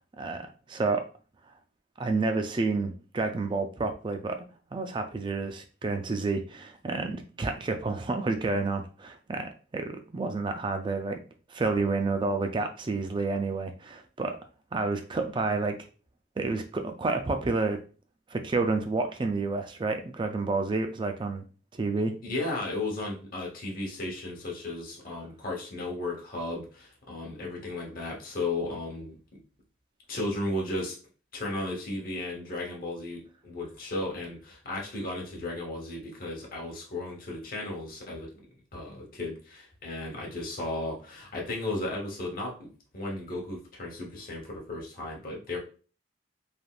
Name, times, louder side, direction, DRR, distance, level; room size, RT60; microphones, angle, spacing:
voice 1, 0.2-1.0 2.0-4.4 4.7-11.2 11.5-14.4 14.7-15.8 16.4-17.8 18.3-21.4 21.7-22.1, right 3 dB, 25° right, 6 dB, 0.3 m, -29 dB
voice 2, 22.2-29.2 30.1-31.0 31.3-38.3 38.7-42.7 42.9-45.6, left 2 dB, 45° left, -1 dB, 0.9 m, -35 dB
3.3 x 2.4 x 2.3 m, 0.37 s
head